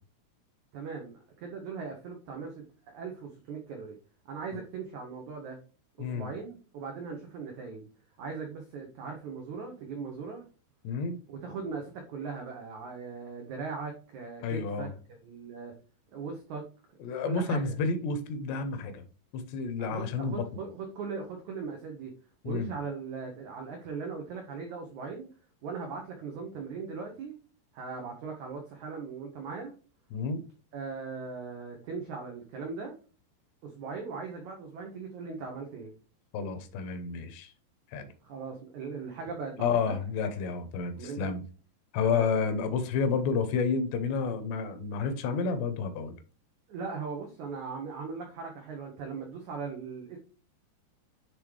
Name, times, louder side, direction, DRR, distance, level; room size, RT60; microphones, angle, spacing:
voice 1, 0.7-3.9 4.2-5.6 6.0-7.9 8.2-10.4 11.3-14.9 15.2-15.7 16.1-16.6 17.2-17.8 19.8-22.1 22.4-25.3 25.6-27.3 27.7-29.7 30.7-32.9 33.6-35.9 38.2-39.9 41.0-41.3 42.0-42.5 46.7-50.2, right 5 dB, 90° right, 1.6 m, -39 dB
voice 2, 6.0-6.3 10.8-11.2 14.4-14.9 17.0-19.0 19.3-20.4 22.4-22.7 30.1-30.4 36.3-37.5 37.9-38.1 39.6-41.4 41.9-46.2, left 5 dB, 80° left, 3.0 m, -30 dB
10.0 x 3.7 x 3.2 m
omnidirectional pair, 4.9 m